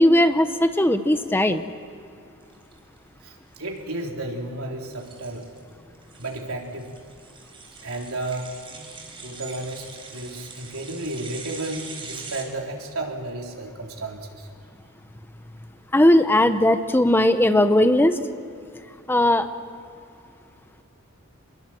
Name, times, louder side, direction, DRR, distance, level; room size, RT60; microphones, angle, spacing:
voice 1, 0.0-1.6 15.9-18.2 19.1-19.5, left 1 dB, 10° left, 9 dB, 0.8 m, -18 dB
sound 1, 2.5-12.4, right 4 dB, 25° right, 3.9 m, -43 dB
voice 2, 3.6-5.5 6.2-6.9 7.8-8.5 9.2-14.5, right 2 dB, 80° right, 1 dB, 3.6 m, -32 dB
26.5 x 21.5 x 7.7 m, 2.6 s
head